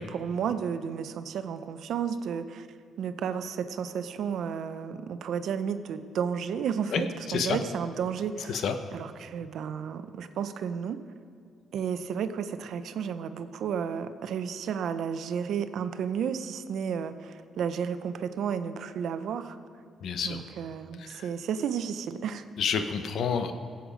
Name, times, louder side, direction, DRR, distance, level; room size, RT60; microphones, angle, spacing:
voice 1, 0.0-2.7 3.0-8.6 8.9-11.0 11.7-19.6 20.2-22.4, right 7 dB, 70° right, 10 dB, 0.7 m, -32 dB
voice 2, 20.0-20.4 21.1-21.2 22.6-23.5, left 6 dB, 70° left, 8 dB, 0.9 m, -28 dB
17.5 x 8.0 x 5.1 m, 2.2 s
cardioid pair, 90°, 0 cm